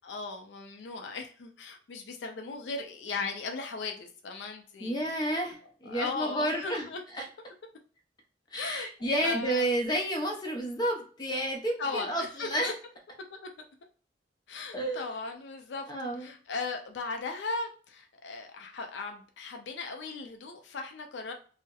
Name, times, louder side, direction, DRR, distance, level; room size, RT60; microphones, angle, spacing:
voice 1, 0.0-5.5 5.9-7.0 8.6-9.7 11.8-12.7 13.3-13.5 14.5-15.9 16.2-21.3, left 3 dB, 80° left, 4 dB, 0.4 m, -37 dB
voice 2, 4.8-6.9 7.2-7.3 8.5-12.7 14.7-15.0 15.9-16.3, right 1 dB, 25° left, 1 dB, 0.5 m, -31 dB
2.7 x 2.0 x 2.2 m, 0.41 s
head